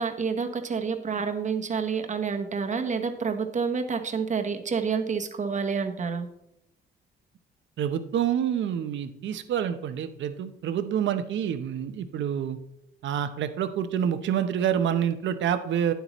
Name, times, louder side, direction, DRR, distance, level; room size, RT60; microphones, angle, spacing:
voice 1, 0.0-6.3, right 5 dB, 40° right, 6 dB, 1.1 m, -28 dB
voice 2, 7.8-12.6 13.0-15.9, right 9 dB, 70° right, 11 dB, 0.8 m, -27 dB
9.3 x 8.1 x 3.1 m, 0.80 s
cardioid pair, 90°, 20 cm